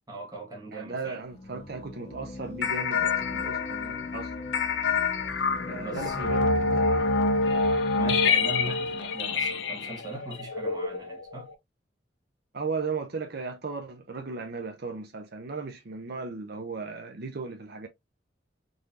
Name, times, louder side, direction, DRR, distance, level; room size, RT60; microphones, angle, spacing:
voice 1, 0.1-1.2 5.8-6.6 8.0-11.5, right 1 dB, 20° right, 1.4 m, -40 dB
voice 2, 0.7-4.4 5.6-7.1 12.5-17.9, right 4 dB, 60° right, 0.7 m, -36 dB
sound 1, 1.3-8.5, left 2 dB, 35° left, 0.5 m, -42 dB
sound 2, 2.6-11.5, left 4 dB, 85° left, 0.7 m, -27 dB
3.8 x 3.2 x 2.6 m
head